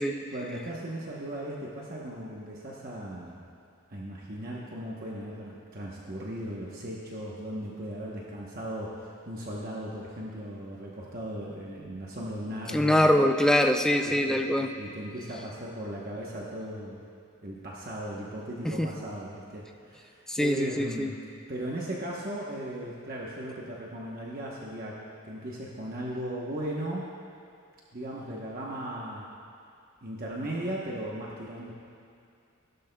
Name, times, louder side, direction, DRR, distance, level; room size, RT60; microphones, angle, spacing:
voice 1, 0.3-3.5 3.9-13.1 14.0-17.1 17.4-21.2 21.5-27.1 27.9-29.3 30.0-31.7, right 1 dB, 40° right, -4 dB, 1.0 m, -37 dB
voice 2, 12.7-14.7 18.6-18.9 20.3-21.1, left 1 dB, 5° left, 4 dB, 0.4 m, -23 dB
17.5 x 12.0 x 2.3 m, 2.4 s
head